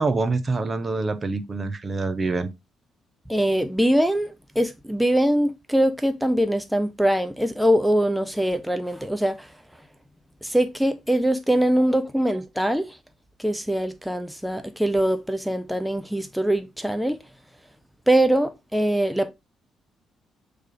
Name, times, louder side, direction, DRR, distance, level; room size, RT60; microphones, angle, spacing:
voice 1, 0.0-2.5 12.2-12.4, right 3 dB, 35° right, 0.8 m, -26 dB
voice 2, 3.3-9.5 10.4-12.9 13.4-17.2 18.1-19.3, right 1 dB, ahead, 0.7 m, -22 dB
8.0 x 3.4 x 3.8 m
cardioid pair, 90°, 0 cm